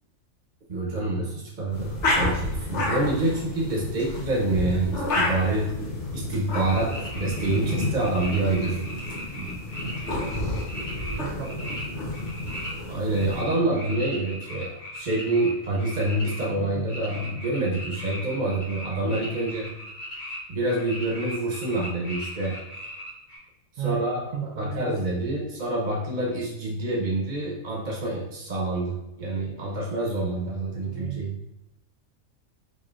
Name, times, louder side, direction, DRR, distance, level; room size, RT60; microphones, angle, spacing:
voice 1, 0.7-5.7 6.1-8.8 9.3-9.6 12.9-19.7 20.5-22.6 23.8-24.2 24.6-31.4, right 2 dB, 35° right, -3 dB, 1.1 m, -27 dB
sound 1, 1.7-13.4, left 2 dB, 60° left, 1.4 m, -30 dB
sound 2, 6.6-11.8 12.1-12.7 13.1-20.4 20.6-23.4, equal, 75° left, 1.9 m, -38 dB
voice 2, 9.8-10.6 10.9-12.3 16.5-16.9 23.8-25.1 30.7-31.3, right 7 dB, 80° right, 0 dB, 1.1 m, -36 dB
5.4 x 3.1 x 2.5 m, 0.89 s
omnidirectional pair, 1.4 m